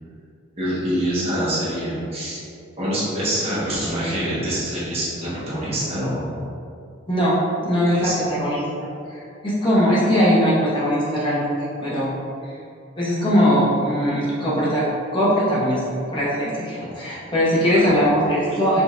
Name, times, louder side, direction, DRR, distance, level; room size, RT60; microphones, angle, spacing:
voice 1, 0.6-2.4 2.8-6.4 7.9-8.2 16.8-17.0 17.7-17.9, equal, 30° right, -8 dB, 1.1 m, -25 dB
voice 2, 7.1-11.5 11.8-12.1 12.4-12.5 13.0-14.8 15.1-15.8 16.1-18.8, equal, 25° left, -8 dB, 0.8 m, -20 dB
5.1 x 3.4 x 2.5 m, 2.5 s
head